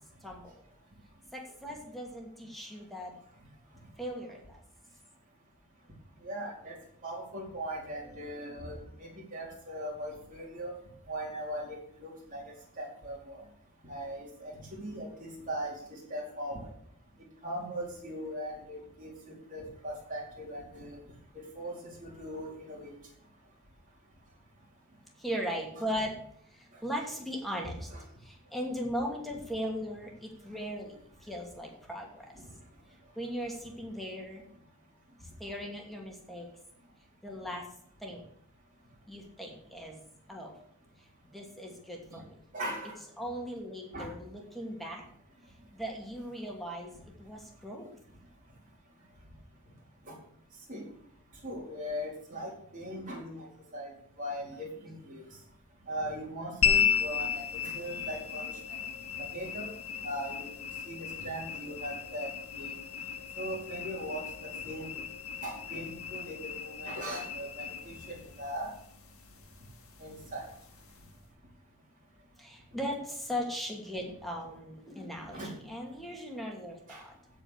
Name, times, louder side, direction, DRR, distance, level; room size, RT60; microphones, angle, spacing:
voice 1, 0.2-0.6 1.3-3.1 4.0-4.6 25.2-26.2 26.5-27.9 28.2-32.3 33.2-34.5 35.4-36.5 37.2-37.7 38.0-38.2 39.1-40.0 40.3-40.5 41.2-42.4 43.2-45.0 45.7-46.9 47.2-47.9 72.4-77.1, equal, ahead, -1 dB, 2.5 m, -38 dB
voice 2, 6.2-10.7 11.1-12.4 12.8-13.4 13.8-16.7 17.4-19.1 19.5-21.0 21.6-22.9 27.6-28.0 32.4-32.5 42.1-42.2 42.5-43.0 43.9-44.1 50.1-50.2 50.7-50.8 51.4-53.5 53.7-53.9 54.2-55.2 55.9-57.4 57.7-58.6 59.2-59.7 60.0-62.8 63.4-65.0 65.4-68.7 70.0-70.5 75.3-75.5 76.9-77.0, equal, 35° right, -3 dB, 4.3 m, -39 dB
sound 1, 56.6-71.2, left 8 dB, 75° left, 1.8 m, -35 dB
15.5 x 5.2 x 6.7 m, 0.66 s
head